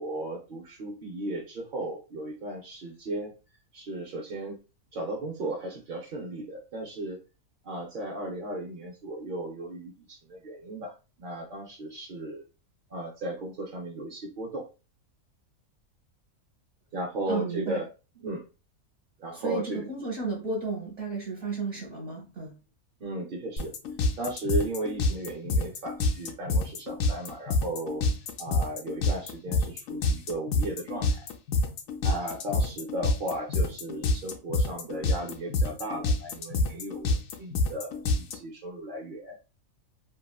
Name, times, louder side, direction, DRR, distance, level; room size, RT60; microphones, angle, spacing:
voice 1, 0.0-3.3 3.7-4.6 4.9-7.2 7.6-12.4 12.9-14.6 16.9-17.9 18.2-18.4 19.2-19.9 23.0-23.8 24.2-28.0 28.4-31.3 32.0-39.4, right 1 dB, 60° right, -1 dB, 0.5 m, -35 dB
voice 2, 17.3-17.8 19.3-22.5, right 4 dB, 35° right, -3 dB, 0.9 m, -33 dB
sound 1, 23.6-38.4, left 2 dB, 70° left, 0.9 m, -27 dB
2.9 x 2.6 x 2.2 m, 0.31 s
omnidirectional pair, 1.6 m